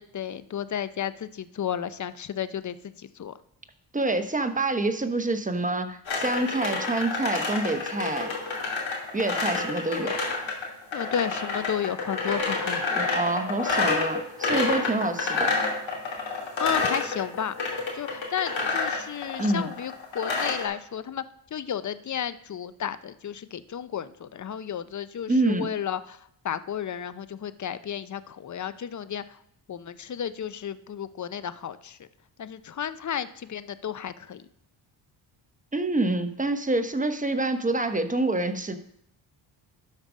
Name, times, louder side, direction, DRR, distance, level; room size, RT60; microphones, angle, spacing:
voice 1, 0.0-3.4 10.9-12.9 16.6-17.5 17.9-21.2 21.5-29.4 29.7-32.1 32.4-34.5, left 9 dB, 35° left, 14 dB, 0.7 m, -33 dB
voice 2, 3.9-8.3 9.1-10.2 12.9-15.6 19.4-19.7 25.3-25.7 35.7-38.8, right 2 dB, 15° right, 8 dB, 1.1 m, -27 dB
sound 1, 6.1-20.6, left 4 dB, 65° left, 3.0 m, -28 dB
12.0 x 5.3 x 5.1 m, 0.73 s
cardioid pair, 65°, 49 cm